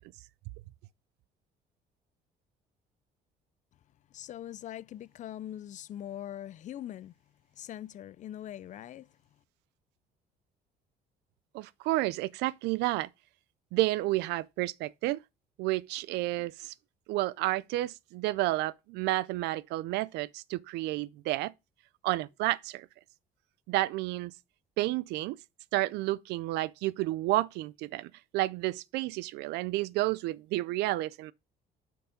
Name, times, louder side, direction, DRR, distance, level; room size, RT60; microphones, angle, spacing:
voice 1, 4.1-7.1 7.6-9.1, left 11 dB, 45° left, 0.4 m, -42 dB
voice 2, 11.5-13.1 13.7-15.2 15.6-16.7 17.1-21.5 22.0-22.9 23.7-24.3 24.8-25.4 25.7-31.3, right 18 dB, 85° right, 0.4 m, -31 dB
9.2 x 4.7 x 5.1 m
cardioid pair, 110°, 17 cm